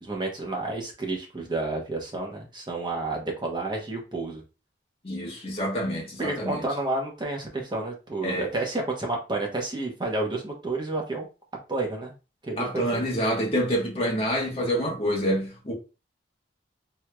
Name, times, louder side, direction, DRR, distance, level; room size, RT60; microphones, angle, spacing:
voice 1, 0.0-4.4 6.2-11.3 11.7-12.1 12.4-13.0, right 2 dB, 25° right, 0.9 m, -30 dB
voice 2, 5.0-6.6 8.2-8.5 12.6-15.7, equal, 35° left, 1.1 m, -27 dB
3.6 x 3.0 x 2.2 m
head